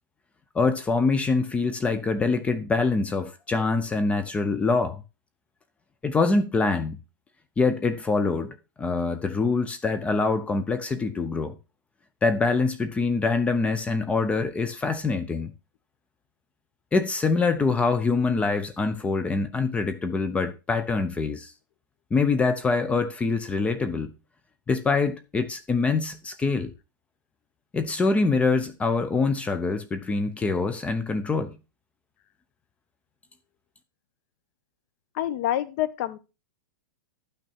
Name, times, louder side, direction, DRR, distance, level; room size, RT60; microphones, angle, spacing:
voice 1, 0.5-5.0 6.0-7.0 7.6-11.6 12.2-15.5 16.9-21.5 22.1-24.1 24.7-26.7 27.7-31.6, left 4 dB, 10° left, 0.8 m, -25 dB
voice 2, 35.1-36.2, left 12 dB, 45° left, 1.3 m, -27 dB
11.5 x 6.2 x 4.5 m
hypercardioid pair, 145°, 11 cm